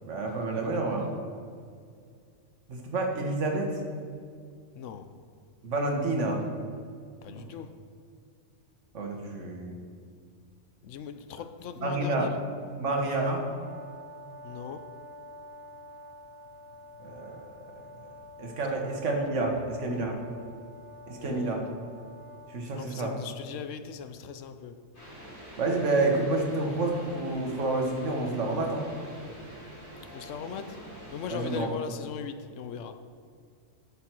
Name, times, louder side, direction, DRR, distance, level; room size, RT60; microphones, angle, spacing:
voice 1, 0.0-1.1 2.7-3.7 5.6-6.4 7.3-7.5 8.9-9.7 11.8-12.3 12.8-13.5 17.0-17.4 18.4-20.2 21.1-21.6 22.5-23.1 25.6-28.8 31.3-31.7, right 2 dB, 70° right, 1.6 m, -29 dB
voice 2, 4.8-5.1 7.2-7.8 10.8-12.4 14.4-14.9 21.2-21.6 22.8-24.8 30.1-30.8 31.1-33.0, left 7 dB, 80° left, 1.0 m, -39 dB
Brass instrument, 13.5-22.5, left 1 dB, 40° left, 1.4 m, -48 dB
sound 1, 24.9-31.7, equal, 60° left, 3.3 m, -45 dB
11.0 x 7.0 x 4.5 m
omnidirectional pair, 1.3 m